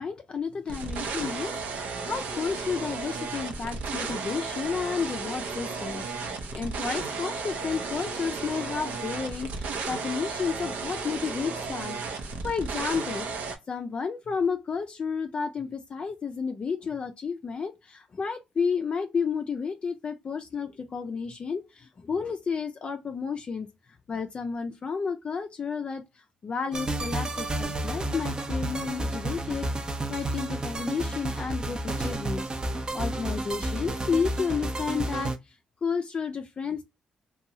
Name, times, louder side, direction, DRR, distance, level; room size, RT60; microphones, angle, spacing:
voice 1, 0.0-13.3 13.7-23.7 24.1-26.0 26.4-35.6 35.8-36.8, left 5 dB, 45° left, 0.4 m, -32 dB
sound 1, 0.7-13.6, right 4 dB, 80° right, 0.7 m, -34 dB
sound 2, 26.7-35.4, right 2 dB, 30° right, 0.6 m, -31 dB
2.6 x 2.3 x 2.8 m
cardioid pair, 75°, 3 cm